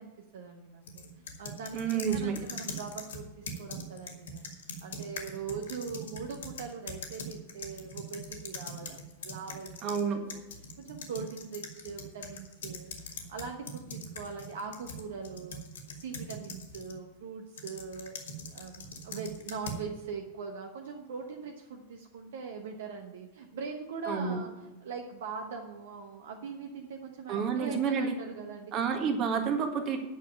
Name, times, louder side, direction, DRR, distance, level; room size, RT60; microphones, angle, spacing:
voice 1, 0.0-4.5 4.8-10.3 10.8-15.6 15.9-18.2 18.5-29.1, right 5 dB, 60° right, 2 dB, 1.1 m, -41 dB
sound 1, 0.9-10.0 10.3-17.0 17.6-19.9, left 1 dB, 60° left, 1.7 m, -42 dB
voice 2, 1.7-2.4 9.8-10.2 24.1-24.4 27.3-28.1 28.7-30.0, right 6 dB, 35° right, 6 dB, 1.6 m, -29 dB
9.6 x 6.4 x 8.5 m, 1.0 s
figure-of-eight pair, 90°, 0 cm